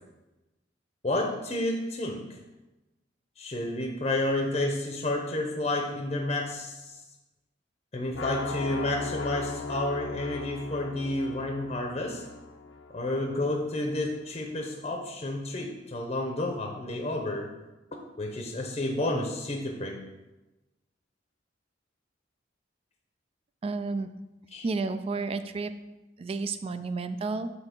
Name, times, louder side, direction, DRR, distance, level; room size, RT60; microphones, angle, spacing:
voice 1, 1.0-2.4 3.4-7.0 7.9-12.2 12.9-17.5 18.2-20.0 24.5-24.6, left 1 dB, 35° left, 2 dB, 0.7 m, -30 dB
sound 1, 8.1-14.1, left 3 dB, 90° left, 0.7 m, -39 dB
voice 2, 23.6-24.1 24.6-25.7 26.2-27.5, right 3 dB, 30° right, 11 dB, 0.3 m, -31 dB
7.8 x 2.9 x 5.9 m, 1.0 s
head